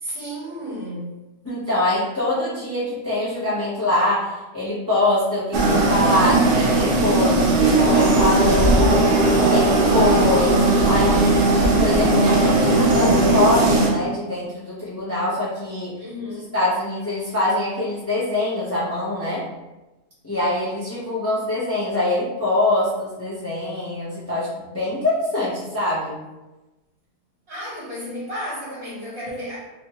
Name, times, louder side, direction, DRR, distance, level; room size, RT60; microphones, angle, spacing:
voice 1, 0.0-1.1 16.0-16.5 27.5-29.6, equal, 50° right, -8 dB, 1.4 m, -32 dB
voice 2, 1.4-9.0 9.5-10.6 10.8-11.5 11.8-15.9 16.3-19.4 20.2-26.1, left 1 dB, 15° left, -9 dB, 0.5 m, -24 dB
sound 1, 5.5-13.9, right 2 dB, 90° right, 0.4 m, -17 dB
3.3 x 2.2 x 2.9 m, 1.1 s
omnidirectional pair, 1.5 m